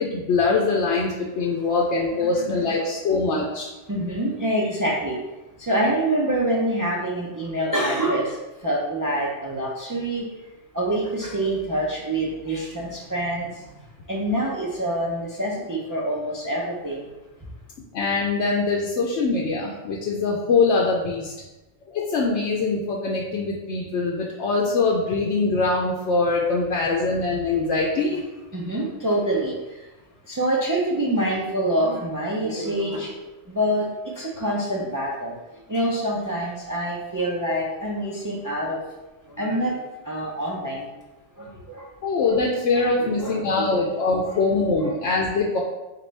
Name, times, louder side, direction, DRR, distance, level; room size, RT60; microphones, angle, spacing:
voice 1, 0.0-3.7 17.9-21.3 21.9-28.2 42.0-45.6, left 3 dB, 80° left, -2 dB, 0.9 m, -23 dB
voice 2, 2.2-2.8 3.9-5.2 5.6-8.4 8.6-10.3 10.7-13.6 14.1-17.1 28.5-29.9 30.3-33.2 33.5-33.9 34.2-35.3 35.7-38.8 39.3-39.7 40.0-40.9 41.4-41.9 42.3-42.4 42.7-44.0 44.3-44.4 44.8-44.9, right 1 dB, 25° right, -5 dB, 0.4 m, -26 dB
4.1 x 3.7 x 3.3 m, 1.1 s
omnidirectional pair, 1.2 m